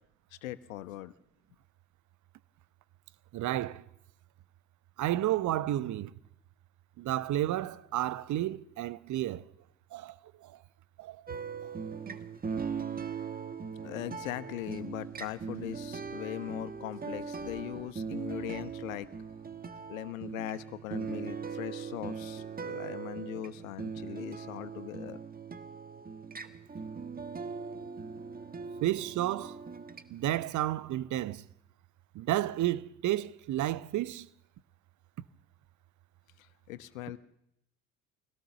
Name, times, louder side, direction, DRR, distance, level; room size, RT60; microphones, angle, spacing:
voice 1, 0.4-1.1 13.8-19.1 19.9-25.2 36.4-37.2, left 15 dB, 70° left, 1.1 m, -40 dB
voice 2, 3.3-3.8 5.0-6.1 7.0-9.4 9.9-10.1 10.4-10.5 11.0-11.2 28.8-29.6 30.1-31.4 32.1-34.3, right 14 dB, 45° right, 1.0 m, -31 dB
sound 1, 11.3-30.3, right 5 dB, 20° right, 1.7 m, -40 dB
24.5 x 17.0 x 6.9 m
figure-of-eight pair, 60°, 41 cm